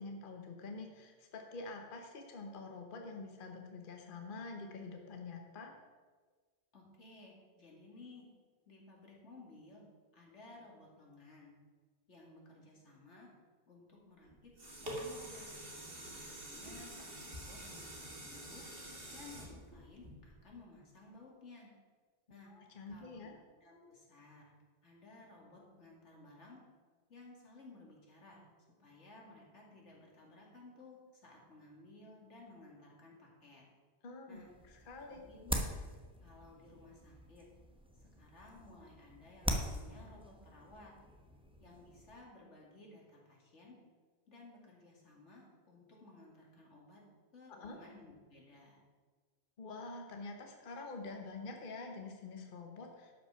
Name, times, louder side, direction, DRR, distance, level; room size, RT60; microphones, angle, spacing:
voice 1, 0.0-5.7 22.4-23.3 34.0-34.4 34.7-35.3 47.6-47.8 49.6-53.1, left 3 dB, 50° left, 3 dB, 1.1 m, -47 dB
voice 2, 6.7-8.3 8.7-9.8 10.1-11.5 12.1-13.3 13.7-15.5 16.0-18.7 19.1-21.7 22.3-22.5 22.9-23.3 23.6-24.4 24.8-26.6 27.1-28.4 28.8-33.6 34.3-34.5 35.0-35.7 36.2-37.4 38.0-41.1 41.6-43.8 44.3-47.0 47.3-48.8, left 2 dB, 90° left, -2 dB, 2.7 m, -57 dB
sound 1, 14.3-20.6 21.1-21.2, right 1 dB, 55° right, 2.2 m, -47 dB
sound 2, 34.5-42.2, equal, 5° right, 0.9 m, -43 dB
12.0 x 5.8 x 5.7 m, 1.5 s
omnidirectional pair, 1.2 m